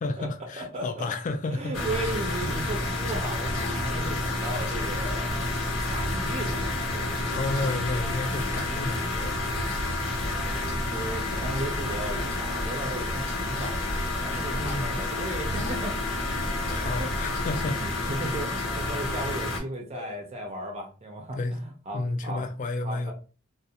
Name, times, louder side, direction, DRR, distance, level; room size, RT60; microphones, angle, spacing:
voice 1, 0.0-2.1 7.3-9.4 14.6-15.1 16.7-18.1 19.9-20.2 21.3-21.6 21.9-23.1, left 2 dB, 40° left, 0.4 m, -32 dB
voice 2, 0.6-1.1 1.5-5.4 5.8-7.3 10.9-16.0 16.5-17.1 17.5-22.4 22.8-23.1, right 1 dB, 30° right, 0.5 m, -36 dB
sound 1, 1.7-19.6, left 2 dB, 90° left, 0.9 m, -30 dB
sound 2, 1.9-17.7, equal, 65° left, 1.0 m, -39 dB
2.4 x 2.1 x 2.7 m
head